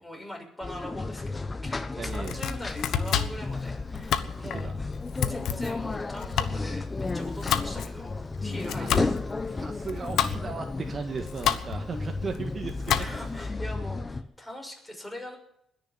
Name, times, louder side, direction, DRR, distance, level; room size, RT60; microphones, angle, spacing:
voice 1, 0.0-4.7 5.2-9.1 13.0-15.4, left 1 dB, 10° left, 0 dB, 6.4 m, -42 dB
sound 1, 0.6-14.2, left 3 dB, 25° left, 1.1 m, -33 dB
voice 2, 2.0-2.4 4.4-4.8 8.5-13.0 13.3-13.5, right 4 dB, 40° right, 4 dB, 1.7 m, -37 dB
Domestic sounds home sounds, 2.1-13.4, left 9 dB, 80° left, 1.1 m, -31 dB
20.5 x 7.0 x 10.0 m, 0.74 s
cardioid pair, 90°, 0 cm